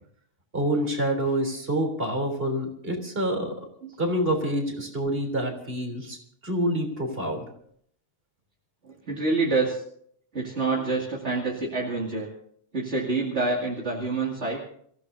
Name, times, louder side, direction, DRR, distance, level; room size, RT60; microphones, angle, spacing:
voice 1, 0.5-3.5 4.0-6.2 6.4-7.4, right 1 dB, 50° right, 4 dB, 3.8 m, -27 dB
voice 2, 8.8-9.8 10.3-12.3 12.7-14.6, right 3 dB, 65° right, -3 dB, 2.7 m, -27 dB
27.0 x 15.5 x 2.7 m, 0.63 s
omnidirectional pair, 1.3 m